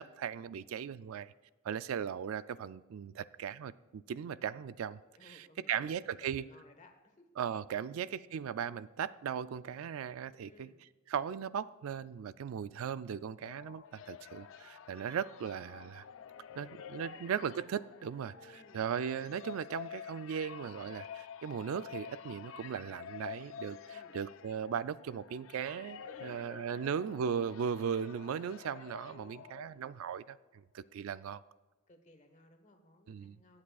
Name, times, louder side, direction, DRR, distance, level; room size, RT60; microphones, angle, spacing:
voice 1, 0.0-1.3 1.6-6.5 7.4-10.7 11.1-16.0 16.6-31.4 33.1-33.4, right 7 dB, 80° right, 0.3 m, -38 dB
voice 2, 5.2-7.3 7.7-7.9 10.4-10.8 16.5-16.7 17.0-17.6 18.3-18.9 23.9-24.2 26.0-26.9 29.1-29.5 31.1-31.2 31.9-33.6, left 2 dB, 35° left, 1.2 m, -60 dB
sound 1, 13.2-30.1, left 8 dB, 65° left, 0.4 m, -49 dB
23.5 x 8.6 x 2.4 m
head